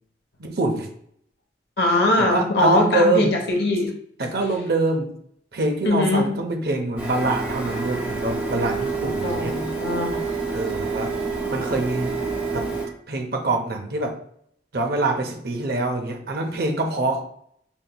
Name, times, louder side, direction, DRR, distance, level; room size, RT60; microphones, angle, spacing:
voice 1, 0.4-0.9 2.2-3.3 4.2-5.1 5.5-9.6 10.5-11.1 11.5-12.2 12.5-12.7 13.1-14.2 14.7-17.2, right 2 dB, 55° right, 4 dB, 0.6 m, -24 dB
voice 2, 1.8-3.9 5.8-6.3 9.2-10.2, left 2 dB, 60° left, 2 dB, 0.7 m, -21 dB
Printer, 7.0-12.8, right 4 dB, 10° right, 1.3 m, -28 dB
5.4 x 2.8 x 2.2 m, 0.67 s
head